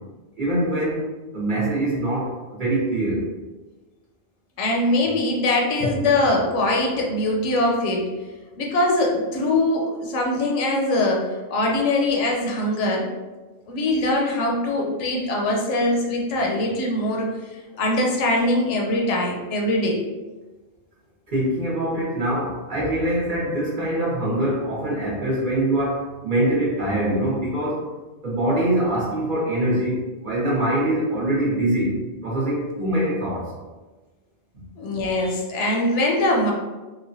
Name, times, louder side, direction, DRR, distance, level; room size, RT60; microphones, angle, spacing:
voice 1, 0.4-1.1 1.3-3.3 21.3-27.9 28.2-31.9 32.2-33.5, right 1 dB, 50° right, -6 dB, 0.9 m, -23 dB
voice 2, 4.6-8.1 8.6-13.1 13.7-20.0 22.8-23.0 34.8-36.5, left 1 dB, 80° left, -1 dB, 0.9 m, -22 dB
3.1 x 2.1 x 2.6 m, 1.2 s
omnidirectional pair, 1.2 m